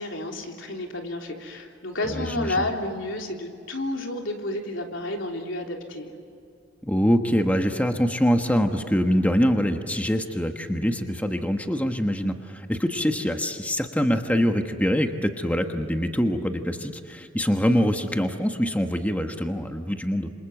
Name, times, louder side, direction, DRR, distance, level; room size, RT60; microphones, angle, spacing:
voice 1, 0.0-6.1, left 1 dB, 80° left, 2 dB, 3.4 m, -31 dB
voice 2, 2.1-2.7 6.8-20.3, equal, 10° left, 5 dB, 1.2 m, -24 dB
27.5 x 27.0 x 7.9 m, 2.4 s
head